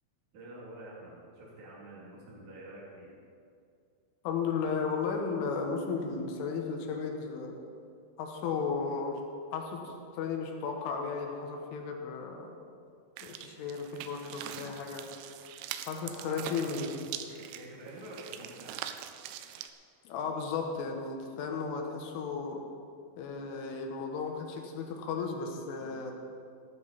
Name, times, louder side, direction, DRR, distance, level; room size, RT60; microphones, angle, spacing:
voice 1, 0.3-3.1 14.4-14.8 15.9-16.8 17.3-18.8 25.8-26.0, right 1 dB, 45° right, -6 dB, 3.9 m, -48 dB
voice 2, 4.3-7.6 8.2-9.2 9.5-12.6 13.2-15.0 15.9-17.0 20.1-22.6 23.2-26.1, left 5 dB, 85° left, 2 dB, 3.9 m, -34 dB
sound 1, 13.2-19.7, right 11 dB, 85° right, 3.0 m, -43 dB
18.5 x 11.0 x 4.3 m, 2.4 s
omnidirectional pair, 5.5 m